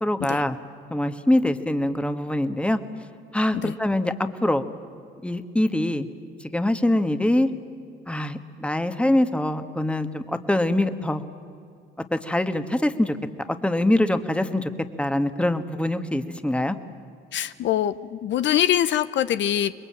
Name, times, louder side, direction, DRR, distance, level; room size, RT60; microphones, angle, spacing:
voice 1, 0.0-0.6 0.9-2.8 3.3-4.7 5.2-6.1 6.5-7.5 8.1-11.3 12.1-13.2 13.6-14.7 15.0-16.8, left 1 dB, 5° left, 9 dB, 1.4 m, -23 dB
voice 2, 17.3-19.7, left 11 dB, 65° left, 13 dB, 0.7 m, -23 dB
26.0 x 21.5 x 8.7 m, 2.4 s
cardioid pair, 90°, 20 cm